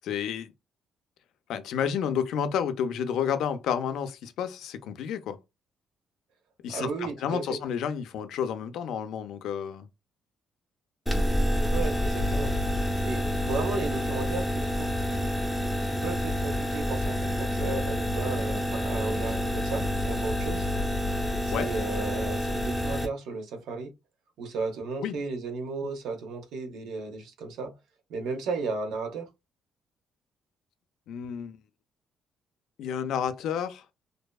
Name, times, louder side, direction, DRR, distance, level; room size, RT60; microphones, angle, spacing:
voice 1, 0.0-0.5 1.5-5.4 6.6-9.9 21.5-21.7 25.0-25.2 31.1-31.6 32.8-33.8, left 8 dB, 75° left, 0.4 m, -30 dB
voice 2, 6.7-7.6 11.7-12.5 13.0-15.4 15.8-20.7 21.4-23.9 24.4-27.7 28.1-29.3, right 4 dB, 80° right, 0.8 m, -34 dB
sound 1, 11.1-23.1, left 1 dB, 5° left, 0.5 m, -28 dB
2.6 x 2.2 x 2.3 m
cardioid pair, 135°, 0 cm